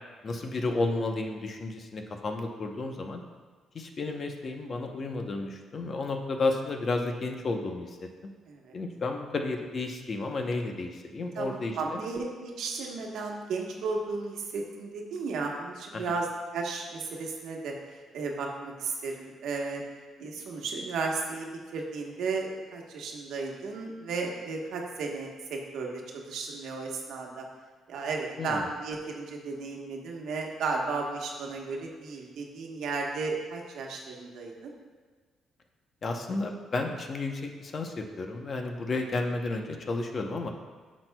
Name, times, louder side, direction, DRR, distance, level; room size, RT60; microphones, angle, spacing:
voice 1, 0.2-3.2 3.7-8.1 8.7-12.0 15.9-16.0 28.4-28.7 36.0-40.5, left 3 dB, 45° left, 4 dB, 0.8 m, -32 dB
voice 2, 11.3-16.3 16.5-17.7 18.1-19.8 20.2-21.5 21.7-27.4 27.9-34.7, right 4 dB, 80° right, 0 dB, 1.1 m, -34 dB
10.0 x 6.3 x 2.3 m, 1.4 s
cardioid pair, 105°, 0 cm